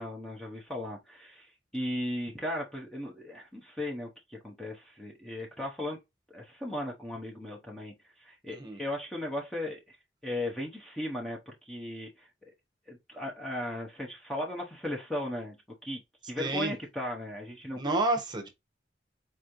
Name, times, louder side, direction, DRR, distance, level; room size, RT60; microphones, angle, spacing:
voice 1, 0.0-6.0 6.3-10.0 10.2-12.3 12.9-15.5 15.8-16.0 16.3-17.8, left 1 dB, 5° left, 0.8 m, -37 dB
voice 2, 8.5-8.8 16.4-16.7 17.8-18.5, right 2 dB, 25° right, 1.0 m, -29 dB
4.5 x 3.2 x 2.6 m
head